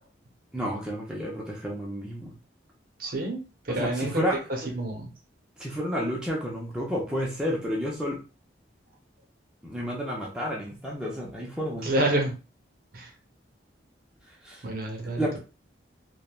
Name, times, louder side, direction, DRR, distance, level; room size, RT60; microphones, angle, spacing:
voice 1, 0.5-2.3 3.7-4.4 5.6-8.2 9.6-11.9 14.4-14.6 15.2-15.4, equal, 5° right, -4 dB, 0.5 m, -31 dB
voice 2, 3.0-4.2 4.6-5.1 11.8-12.3 12.9-13.1 14.6-15.4, right 1 dB, 50° right, 1 dB, 0.7 m, -28 dB
3.1 x 2.1 x 2.3 m, 0.33 s
head